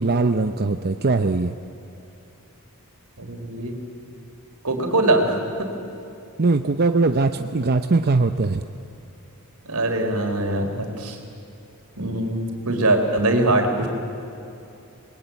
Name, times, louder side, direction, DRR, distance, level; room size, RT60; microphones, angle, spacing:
voice 1, 0.0-1.6 6.4-8.6, right 3 dB, 45° right, 8 dB, 0.7 m, -21 dB
voice 2, 3.2-3.7 4.6-5.7 9.7-11.2 12.0-13.9, right 2 dB, 85° right, 4 dB, 4.0 m, -22 dB
29.0 x 21.0 x 9.2 m, 2.7 s
head